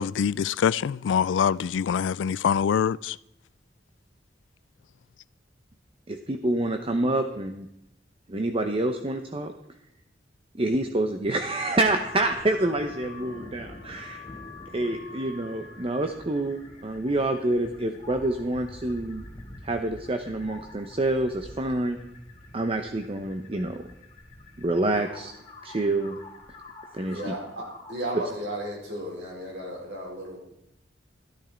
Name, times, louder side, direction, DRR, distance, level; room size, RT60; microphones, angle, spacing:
voice 1, 0.0-3.2, left 7 dB, 85° left, 0.3 m, -24 dB
voice 2, 6.1-7.7 8.3-9.5 10.5-14.2 14.7-19.2 19.6-22.0 22.5-23.8 24.6-25.3 25.6-26.2 26.9-27.3, right 2 dB, 30° right, 0.8 m, -27 dB
sound 1, 11.9-28.0, left 2 dB, 35° left, 3.1 m, -46 dB
voice 3, 27.0-30.4, right 1 dB, 75° right, 4.8 m, -35 dB
13.0 x 12.5 x 4.4 m
head